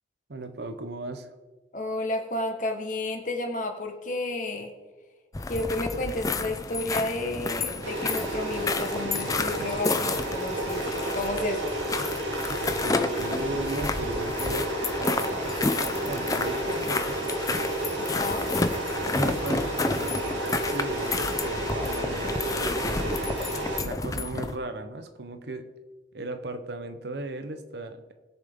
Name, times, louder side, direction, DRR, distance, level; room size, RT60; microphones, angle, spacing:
voice 1, 0.3-1.3 12.5-17.3 19.2-22.6 23.2-25.7 26.1-28.1, right 2 dB, 65° right, 8 dB, 0.8 m, -37 dB
voice 2, 1.7-4.7 5.5-11.7 18.0-18.5, left 2 dB, 45° left, 5 dB, 1.3 m, -32 dB
sound 1, 5.3-24.6, left 3 dB, 20° left, 0.5 m, -31 dB
sound 2, 7.8-23.8, right 1 dB, 85° right, 2.3 m, -31 dB
sound 3, 15.3-21.7, equal, ahead, 2.6 m, -48 dB
20.5 x 6.8 x 3.7 m, 1.3 s
head